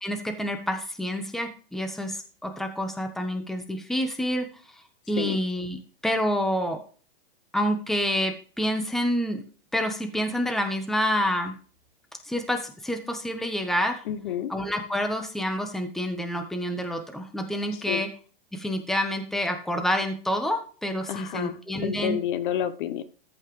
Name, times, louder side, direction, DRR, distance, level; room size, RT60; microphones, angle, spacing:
voice 1, 0.0-4.5 5.1-6.8 7.5-9.4 9.7-11.5 12.3-14.0 14.5-18.1 18.5-22.2, equal, ahead, 6 dB, 1.1 m, -28 dB
voice 2, 14.1-14.5 17.9-18.1 21.1-23.0, left 10 dB, 55° left, 13 dB, 1.0 m, -30 dB
14.0 x 5.6 x 3.2 m, 0.38 s
hypercardioid pair, 140°, 30 cm